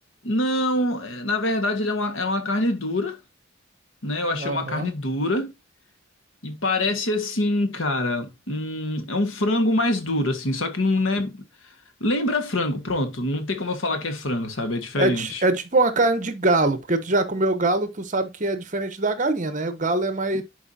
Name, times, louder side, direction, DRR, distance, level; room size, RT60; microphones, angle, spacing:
voice 1, 0.2-3.2 4.0-5.5 6.4-11.4 12.0-15.4 20.3-20.4, left 1 dB, 75° left, 1.6 m, -25 dB
voice 2, 4.4-4.9 15.0-20.4, right 2 dB, 40° right, 1.0 m, -23 dB
10.5 x 4.7 x 2.7 m
head